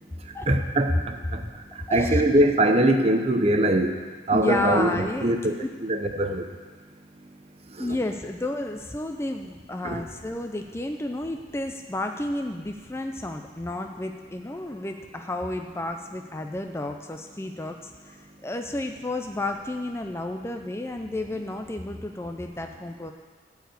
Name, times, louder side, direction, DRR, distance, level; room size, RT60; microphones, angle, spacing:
voice 1, 0.5-1.4 1.9-4.0 4.3-5.5 5.8-6.4 7.8-8.0 9.8-10.0, right 1 dB, 35° right, 5 dB, 0.7 m, -22 dB
voice 2, 1.9-2.4 4.3-5.3 5.6-5.7 7.8-23.1, left 2 dB, 15° left, 4 dB, 0.4 m, -31 dB
13.5 x 4.8 x 8.0 m, 1.5 s
head